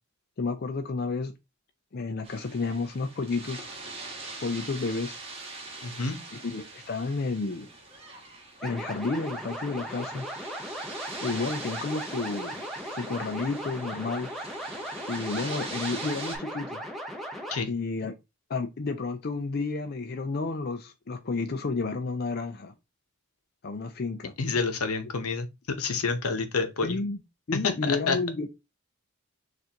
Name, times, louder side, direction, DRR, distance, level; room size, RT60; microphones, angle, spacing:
voice 1, 0.4-1.3 1.9-3.7 4.4-5.2 6.4-7.7 8.6-10.3 11.2-12.6 12.9-14.3 15.1-16.8 17.7-18.2 18.5-22.7 23.6-24.3 26.8-27.2 27.5-28.5, left 3 dB, 45° left, 0.4 m, -31 dB
sound 1, 2.2-16.4, right 3 dB, 25° right, 1.2 m, -42 dB
voice 2, 5.8-6.2 17.5-17.7 24.4-25.5 25.8-27.0 27.6-28.2, left 4 dB, 80° left, 0.8 m, -28 dB
sound 2, 8.6-17.6, equal, ahead, 0.8 m, -37 dB
6.5 x 2.6 x 2.9 m
head